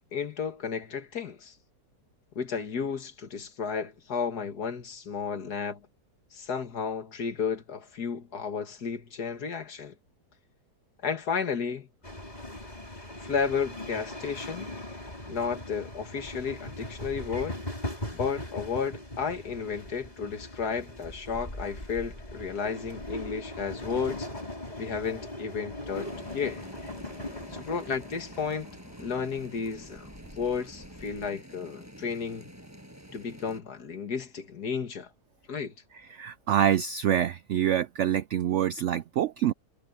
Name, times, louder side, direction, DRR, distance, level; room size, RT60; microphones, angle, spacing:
voice 1, 0.0-1.5 2.4-5.8 6.3-10.0 11.0-11.9 13.2-14.7 15.3-17.6 18.1-24.3 24.8-26.7 27.5-30.1 30.4-32.5 33.1-35.1 35.5-35.7, left 6 dB, 70° left, 2.3 m, -33 dB
sound 1, 12.0-31.3, left 1 dB, 25° left, 5.5 m, -40 dB
sound 2, 25.9-33.6, equal, 10° right, 6.7 m, -48 dB
voice 2, 36.1-39.5, right 10 dB, 75° right, 0.6 m, -26 dB
omnidirectional pair, 1.7 m